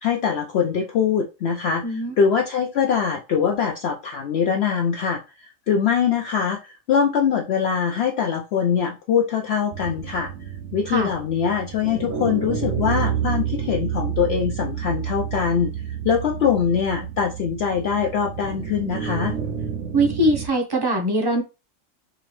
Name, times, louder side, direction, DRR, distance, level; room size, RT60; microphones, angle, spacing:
voice 1, 0.0-10.3 10.7-15.7 16.0-19.3, left 7 dB, 65° left, 2 dB, 0.7 m, -23 dB
voice 2, 1.8-2.1 10.9-11.1 19.9-21.4, right 1 dB, 20° right, 2 dB, 0.7 m, -21 dB
sound 1, 9.7-20.5, right 8 dB, 70° right, 1.0 m, -29 dB
3.8 x 3.0 x 3.0 m, 0.29 s
omnidirectional pair, 1.4 m